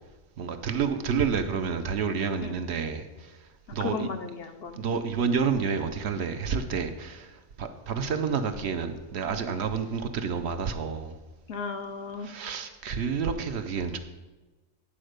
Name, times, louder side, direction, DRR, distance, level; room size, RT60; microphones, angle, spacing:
voice 1, 0.4-3.4 3.7-4.1 4.8-11.1 12.2-14.0, right 6 dB, 65° right, 8 dB, 0.9 m, -29 dB
voice 2, 3.8-5.1 11.5-12.3, left 5 dB, 60° left, 7 dB, 0.7 m, -35 dB
10.0 x 4.3 x 6.4 m, 1.2 s
omnidirectional pair, 1.3 m